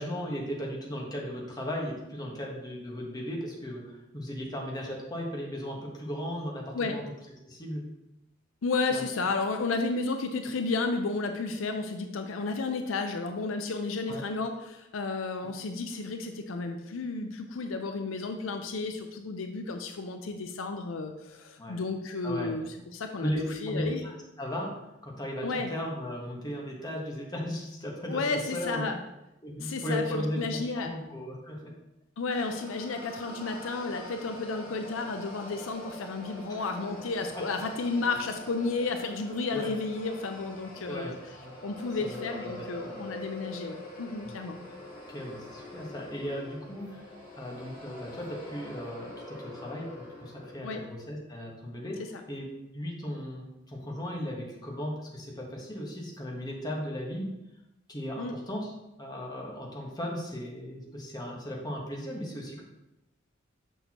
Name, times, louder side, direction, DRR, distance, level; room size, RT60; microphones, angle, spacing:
voice 1, 0.0-7.0 7.5-7.9 8.9-9.0 14.1-14.2 15.5-15.6 21.6-21.8 22.2-22.5 23.2-24.1 24.4-24.8 25.0-28.9 29.4-31.7 36.5-36.7 37.5-37.6 39.5-39.8 40.8-41.1 41.4-41.5 42.0-43.0 44.2-44.3 45.1-47.0 47.4-52.0 52.3-57.3 57.9-58.7 59.0-62.6, equal, 20° left, -2 dB, 1.3 m, -36 dB
voice 2, 8.6-24.0 25.4-25.7 28.1-29.0 29.6-30.9 32.2-41.1 41.6-44.6 50.6-50.8 58.2-58.3, left 3 dB, 80° left, 6 dB, 0.5 m, -32 dB
sound 1, 32.3-50.6, left 1 dB, 45° left, 2.3 m, -45 dB
6.6 x 6.3 x 3.0 m, 0.91 s
head